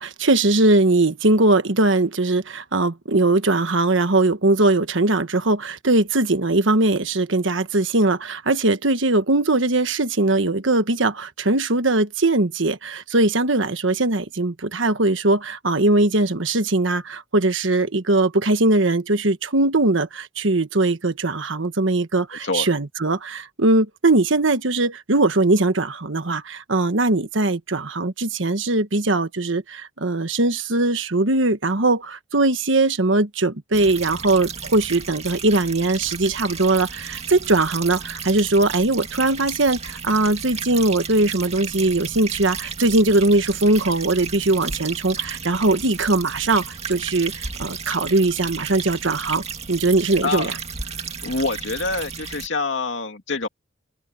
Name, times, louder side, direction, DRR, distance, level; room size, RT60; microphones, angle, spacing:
voice 1, 0.0-47.3 47.6-50.5, right 2 dB, 70° right, 1.4 m, -20 dB
sound 1, 33.7-52.5, right 6 dB, 35° right, 2.1 m, -33 dB
voice 2, 50.2-50.6 50.9-53.5, left 3 dB, 70° left, 2.3 m, -26 dB
head